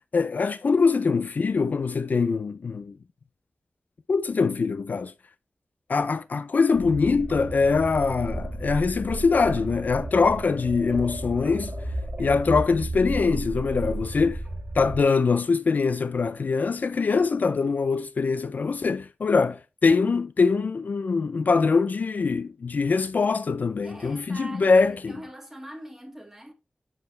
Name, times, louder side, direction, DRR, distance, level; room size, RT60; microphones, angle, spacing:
voice 1, 0.1-2.9 4.1-5.1 5.9-11.7 12.2-14.4 14.8-25.2, left 4 dB, 60° left, 0.3 m, -23 dB
sound 1, 6.7-15.0, right 1 dB, 40° right, 2.6 m, -33 dB
voice 2, 23.8-26.5, right 1 dB, 10° right, 1.7 m, -43 dB
7.2 x 5.1 x 3.2 m
wide cardioid pair, 95°, 3 cm